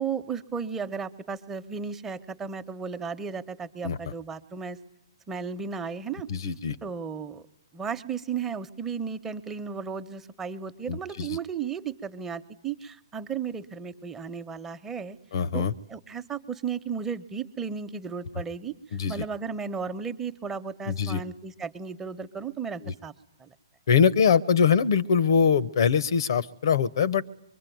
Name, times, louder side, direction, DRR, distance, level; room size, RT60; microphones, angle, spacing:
voice 1, 0.0-4.8 5.3-6.3 6.8-7.4 7.7-15.2 15.5-23.1 23.4-23.5, right 6 dB, 15° right, 8 dB, 1.0 m, -34 dB
voice 2, 6.3-6.8 10.9-11.4 15.3-15.7 18.9-19.2 20.9-21.2 22.8-22.9 23.9-27.2, left 6 dB, 60° left, 20 dB, 0.9 m, -23 dB
23.5 x 22.5 x 9.2 m, 0.76 s
hypercardioid pair, 135°, 3 cm